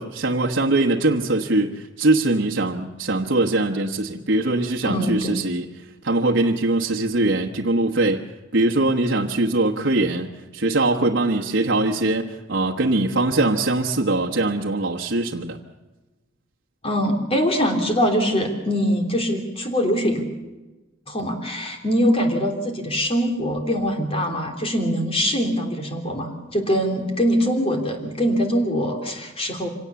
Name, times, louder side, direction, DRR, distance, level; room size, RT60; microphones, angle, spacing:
voice 1, 0.0-5.7 6.0-8.2 8.5-10.3 10.5-15.6, right 2 dB, 65° right, 0 dB, 1.2 m, -22 dB
voice 2, 4.8-5.4 16.8-20.2 21.1-29.7, equal, 30° left, 3 dB, 3.3 m, -23 dB
25.5 x 18.0 x 7.0 m, 1.1 s
head